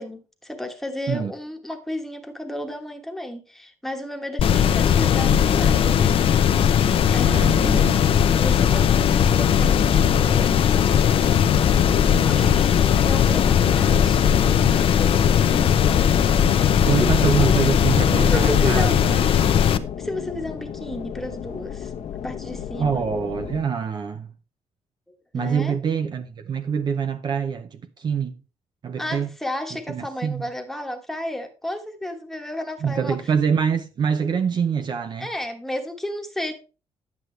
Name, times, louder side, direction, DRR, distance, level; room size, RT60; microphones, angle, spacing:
voice 1, 0.0-6.2 7.1-7.9 8.4-10.6 12.2-16.1 16.8-17.6 18.3-19.0 20.0-21.9 22.2-23.0 25.3-25.8 29.0-33.2 35.2-36.5, left 1 dB, 5° left, 1.2 m, -33 dB
sound 1, 4.4-19.8, left 8 dB, 50° left, 0.7 m, -18 dB
voice 2, 7.3-8.0 16.8-19.2 22.8-24.3 25.3-28.4 28.8-29.3 29.9-30.5 32.8-35.3, right 6 dB, 40° right, 0.6 m, -25 dB
sound 2, 10.4-23.6, left 8 dB, 70° left, 1.1 m, -34 dB
10.5 x 8.4 x 3.2 m
wide cardioid pair, 175°, 12 cm